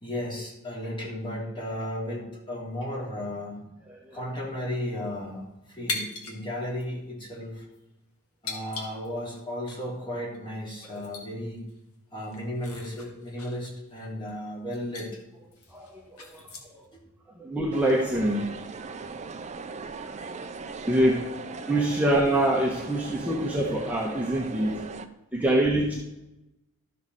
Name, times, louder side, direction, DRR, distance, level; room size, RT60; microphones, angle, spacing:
voice 1, 0.0-3.6 4.1-7.6 8.4-11.6 12.1-15.2, left 1 dB, 20° left, -4 dB, 2.9 m, -34 dB
sound 1, 5.9-6.4 6.7-6.8 7.6-7.8 8.4-9.4 9.7-9.8 10.3-10.4 10.8-11.3 11.7-11.8 12.2-14.4 14.7-15.1 15.5-16.8, left 3 dB, 70° left, 1.9 m, -38 dB
voice 2, 15.7-16.5 16.7-16.8 17.4-18.5 20.9-21.3 21.7-24.8 25.3-25.9, right 1 dB, 5° right, -3 dB, 1.1 m, -25 dB
sound 2, 17.7-25.1, right 4 dB, 30° right, 0.6 m, -39 dB
12.5 x 6.4 x 4.1 m, 0.93 s
head